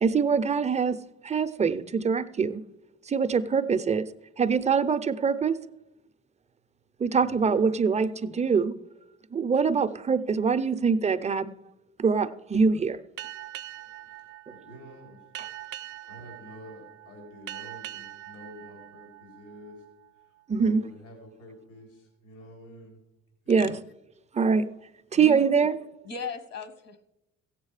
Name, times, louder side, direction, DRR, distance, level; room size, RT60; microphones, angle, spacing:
voice 1, 0.0-2.6 3.1-4.1 4.4-5.6 7.0-8.8 9.3-11.5 12.0-13.0 20.5-20.8 23.5-23.7 24.3-24.7 25.1-25.7, right 5 dB, 20° right, 0.5 m, -24 dB
voice 2, 7.2-7.5 14.1-15.2 16.1-19.9 20.5-23.0 23.4-23.7, equal, 85° left, 3.6 m, -48 dB
Boat Water vehicle, 13.2-20.2, right 13 dB, 75° right, 0.5 m, -43 dB
voice 3, 25.1-25.6 26.0-27.0, left 4 dB, 55° left, 1.3 m, -37 dB
15.5 x 7.3 x 4.8 m
cardioid pair, 90°, 30 cm